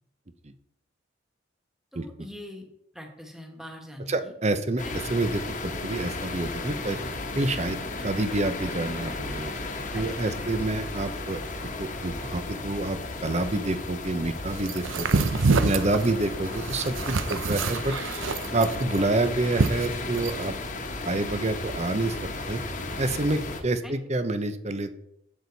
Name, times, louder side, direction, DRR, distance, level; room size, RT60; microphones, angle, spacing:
voice 1, 1.9-2.7 2.9-4.3 4.8-5.0 9.9-10.5 15.5-16.2 17.5-17.8 23.8-24.0, left 1 dB, ahead, 2 dB, 1.7 m, -43 dB
voice 2, 4.1-7.0 7.3-9.5 9.9-11.4 11.8-15.2 15.6-17.9 18.5-20.5 21.0-22.2 22.5-22.6 23.0-24.9, right 2 dB, 35° right, 10 dB, 0.8 m, -28 dB
sound 1, 4.8-23.6, left 2 dB, 40° left, 1.4 m, -35 dB
sound 2, 14.6-20.4, right 4 dB, 90° right, 0.7 m, -26 dB
11.5 x 8.3 x 4.1 m, 0.79 s
head